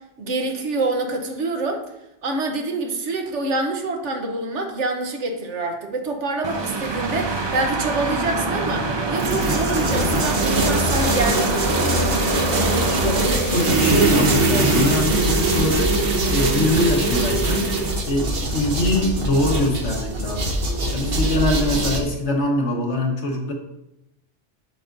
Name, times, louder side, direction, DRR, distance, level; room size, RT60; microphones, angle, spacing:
voice 1, 0.2-1.8 2.2-12.1, right 2 dB, 75° right, 4 dB, 1.2 m, -26 dB
sound 1, 6.4-13.3, right 2 dB, 35° right, 0.5 m, -25 dB
sound 2, 9.1-22.0, right 2 dB, 55° right, 1.1 m, -22 dB
voice 2, 12.9-15.9 16.3-17.7 18.0-20.5 20.9-23.5, left 1 dB, 70° left, 1 dB, 1.5 m, -23 dB
7.7 x 6.9 x 2.6 m, 0.86 s
omnidirectional pair, 1.2 m